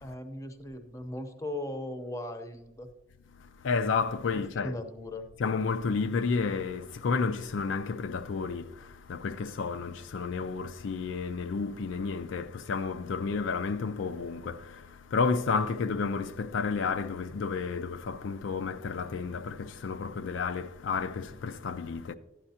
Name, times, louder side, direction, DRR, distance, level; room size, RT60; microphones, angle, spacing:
voice 1, 0.0-2.9 4.3-5.3, left 1 dB, 15° left, 0.7 m, -38 dB
voice 2, 3.6-4.7 5.4-22.1, left 4 dB, 75° left, 0.4 m, -31 dB
12.5 x 9.2 x 2.8 m
head